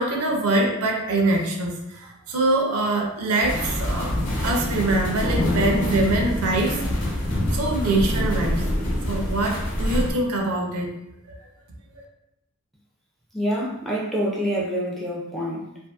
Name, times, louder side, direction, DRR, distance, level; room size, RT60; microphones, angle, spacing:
voice 1, 0.0-4.1 4.4-6.8 7.5-8.7 9.1-10.9 11.3-11.4 11.9-12.0, right 2 dB, 75° right, 2 dB, 0.5 m, -24 dB
sound 1, 3.4-10.1, left 1 dB, 60° left, 0.9 m, -25 dB
voice 2, 13.3-15.8, equal, ahead, -4 dB, 0.4 m, -26 dB
2.6 x 2.5 x 2.3 m, 0.83 s
head